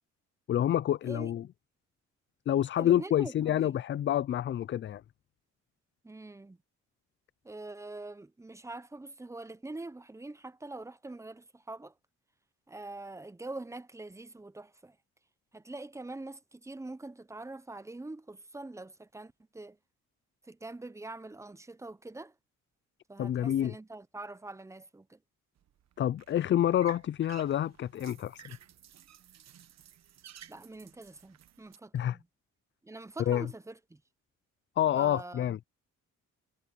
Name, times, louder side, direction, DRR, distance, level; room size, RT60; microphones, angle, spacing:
voice 1, 0.5-1.4 2.5-5.0 23.2-23.7 26.0-28.6 31.9-32.2 33.3-33.5 34.8-35.7, left 11 dB, 40° left, 0.4 m, -28 dB
voice 2, 1.0-1.3 2.8-3.8 6.0-6.6 7.4-11.9 12.7-15.0 15.5-19.8 20.4-22.3 23.1-25.2 30.5-32.3 32.8-34.0 34.9-35.6, right 2 dB, 10° right, 0.8 m, -44 dB
sound 1, 25.6-31.8, right 10 dB, 60° right, 1.3 m, -54 dB
cardioid pair, 90°, 30 cm